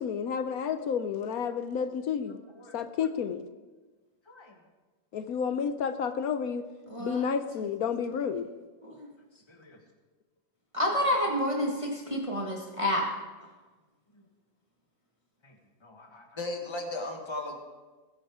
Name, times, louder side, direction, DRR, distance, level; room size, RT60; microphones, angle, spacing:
voice 1, 0.0-2.4 2.7-3.5 5.1-6.6 7.0-8.5, left 7 dB, 65° left, 10 dB, 0.9 m, -31 dB
voice 2, 2.3-2.7 4.3-4.6 9.5-9.8 10.8-10.9 15.4-17.6, left 2 dB, 15° left, 3 dB, 1.4 m, -39 dB
voice 3, 6.9-7.3 8.8-9.1 10.7-13.1, equal, 20° right, -1 dB, 1.4 m, -29 dB
20.5 x 10.5 x 3.6 m, 1.3 s
omnidirectional pair, 2.0 m